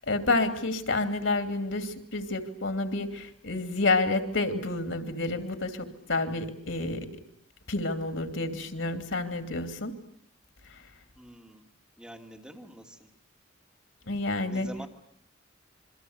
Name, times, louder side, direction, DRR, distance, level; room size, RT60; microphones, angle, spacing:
voice 1, 0.1-7.1 7.7-9.9 10.7-10.8 14.1-14.7, left 2 dB, 85° left, 8 dB, 2.8 m, -29 dB
voice 2, 11.2-11.7 12.0-13.1 14.5-14.9, equal, 5° right, 1 dB, 2.8 m, -46 dB
27.5 x 23.5 x 8.0 m, 0.67 s
head